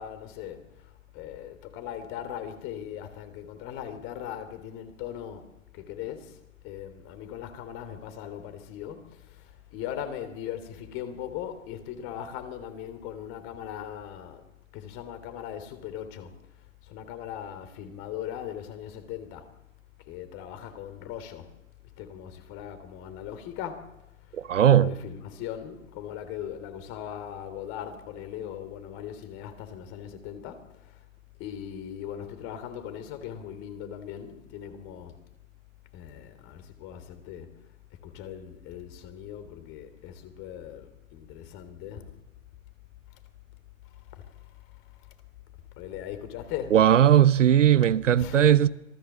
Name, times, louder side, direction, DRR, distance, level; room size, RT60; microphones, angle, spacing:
voice 1, 0.0-14.4 14.7-16.4 16.8-19.5 20.1-21.6 21.8-31.0 31.4-35.3 35.9-37.7 38.0-42.2 43.1-43.2 43.8-45.1 45.8-46.9 47.8-47.9 48.2-48.6, left 10 dB, 30° left, 3.2 m, -39 dB
voice 2, 24.3-24.9 46.7-48.7, right 10 dB, 65° right, 1.0 m, -18 dB
26.0 x 19.0 x 7.4 m
hypercardioid pair, 130°, 40 cm